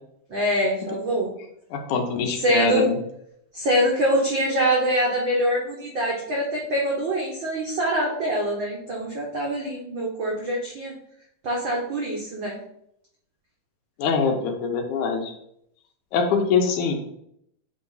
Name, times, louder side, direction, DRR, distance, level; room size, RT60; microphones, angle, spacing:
voice 1, 0.3-1.3 2.3-2.9 3.5-10.9 11.4-12.6, equal, 85° right, -3 dB, 1.0 m, -24 dB
voice 2, 1.7-3.0 14.0-15.3 16.1-16.9, left 5 dB, 75° left, 3 dB, 2.1 m, -23 dB
8.6 x 3.0 x 3.9 m, 0.73 s
omnidirectional pair, 3.8 m